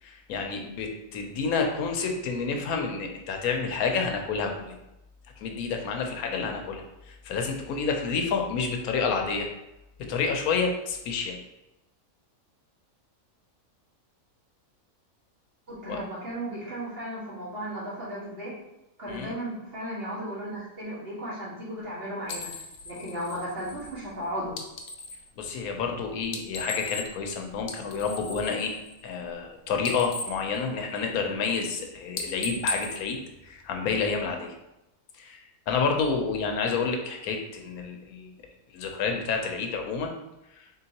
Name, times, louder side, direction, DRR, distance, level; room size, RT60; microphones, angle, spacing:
voice 1, 0.0-4.7 5.4-9.5 10.1-11.4 15.9-16.0 19.1-19.3 25.4-28.8 29.0-33.2 33.4-34.5 35.2-38.3 38.7-40.1 40.6-40.7, left 5 dB, 85° left, 3 dB, 1.1 m, -29 dB
voice 2, 15.7-18.5 19.0-22.5 22.9-24.6, right 1 dB, 45° right, -8 dB, 1.8 m, -35 dB
sound 1, 22.3-25.3 26.2-27.3 27.6-29.5 29.7-31.3 31.6-31.8 32.1-34.0, left 3 dB, 65° left, 0.8 m, -37 dB
4.1 x 3.8 x 2.9 m, 0.93 s
omnidirectional pair, 1.5 m